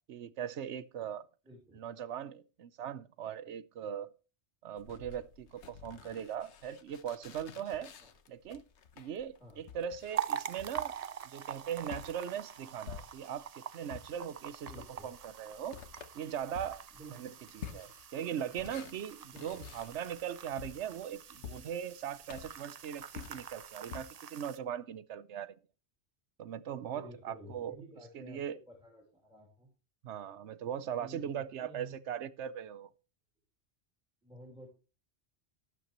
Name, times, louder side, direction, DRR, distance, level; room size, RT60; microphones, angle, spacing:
voice 1, 0.1-1.2 1.7-4.1 4.6-7.9 8.3-8.6 9.0-10.9 11.2-13.5 13.7-14.7 15.0-15.8 16.1-16.8 17.1-25.5 26.4-27.8 28.1-28.6 30.0-32.9, right 9 dB, 90° right, 1.0 m, -40 dB
voice 2, 1.4-1.8 8.0-8.1 9.4-9.6 14.7-15.1 16.9-17.3 19.3-19.7 26.9-29.7 31.0-32.0 34.2-34.7, right 1 dB, 5° right, 2.8 m, -51 dB
sound 1, 4.8-13.5 13.9-24.0, left 7 dB, 85° left, 1.3 m, -50 dB
sound 2, 10.1-24.6, right 8 dB, 45° right, 0.5 m, -44 dB
12.5 x 11.0 x 3.0 m
omnidirectional pair, 1.1 m